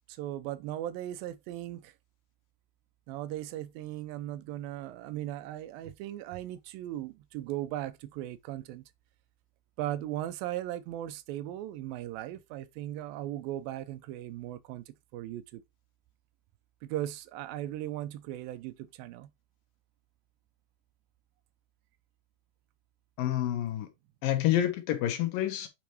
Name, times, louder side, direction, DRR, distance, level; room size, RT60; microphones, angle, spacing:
voice 1, 0.1-1.9 3.1-8.8 9.8-15.6 16.8-19.3, right 13 dB, 80° right, 2.2 m, -38 dB
voice 2, 23.2-23.9 24.2-25.7, left 12 dB, 70° left, 2.5 m, -28 dB
9.0 x 4.9 x 3.0 m
omnidirectional pair, 4.7 m